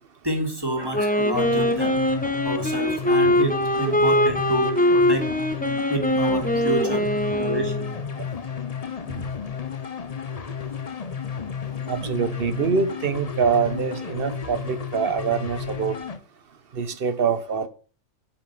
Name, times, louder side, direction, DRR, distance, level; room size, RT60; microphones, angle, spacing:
voice 1, 0.2-2.0 2.4-5.3 5.9-7.0 7.3-7.9 9.1-9.3, right 1 dB, 20° right, 2.2 m, -28 dB
Wind instrument woodwind instrument, 0.8-8.0, left 1 dB, 5° left, 0.9 m, -22 dB
sound 1, 1.3-16.2, left 7 dB, 35° left, 0.8 m, -32 dB
voice 2, 11.9-16.0 16.7-17.7, right 6 dB, 50° right, 1.2 m, -25 dB
10.5 x 5.8 x 5.9 m
omnidirectional pair, 1.3 m